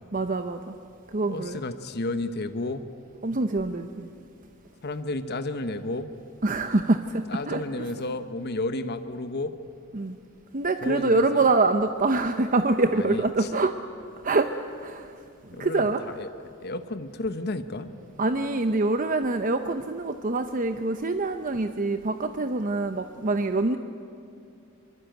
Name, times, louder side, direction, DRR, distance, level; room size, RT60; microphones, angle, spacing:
voice 1, 0.1-0.8 1.1-1.6 3.2-4.1 6.4-7.6 9.9-10.2 10.5-13.7 14.2-14.5 14.8-15.2 15.6-16.0 18.2-23.8, right 3 dB, 40° right, 8 dB, 0.8 m, -25 dB
voice 2, 1.3-2.9 4.8-6.1 7.3-9.6 10.8-11.4 12.9-13.5 15.5-16.3 16.6-17.9, left 2 dB, 50° left, 10 dB, 1.0 m, -32 dB
24.0 x 23.5 x 9.2 m, 2.6 s
head